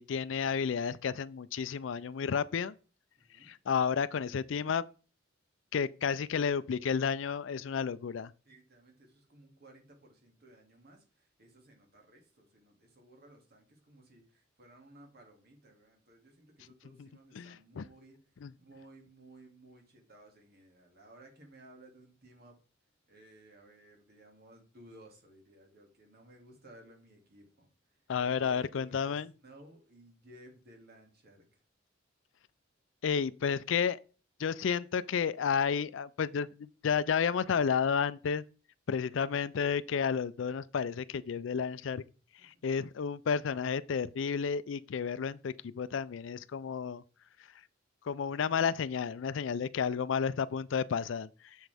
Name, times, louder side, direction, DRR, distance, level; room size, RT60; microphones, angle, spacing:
voice 1, 0.0-2.7 3.4-4.8 5.7-8.3 17.0-17.1 17.3-17.8 18.4-18.5 28.1-29.3 33.0-34.0 34.4-38.4 38.9-42.0 42.4-47.0 48.0-51.6, left 6 dB, 70° left, 0.4 m, -31 dB
voice 2, 3.2-3.5 8.4-22.6 23.1-31.6 42.4-42.5, right 1 dB, 55° right, 2.4 m, -58 dB
7.6 x 7.2 x 3.4 m
head